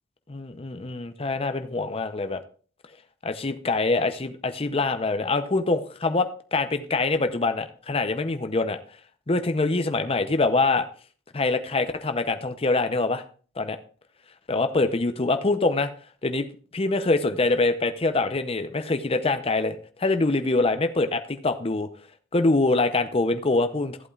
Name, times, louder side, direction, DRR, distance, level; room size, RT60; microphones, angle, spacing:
voice 1, 0.3-2.4 3.2-8.8 9.3-10.9 11.3-13.2 13.6-13.8 14.5-15.9 16.2-16.5 16.7-21.9 22.3-24.0, left 3 dB, 30° left, 9 dB, 0.7 m, -24 dB
14.5 x 8.2 x 2.4 m, 0.42 s
head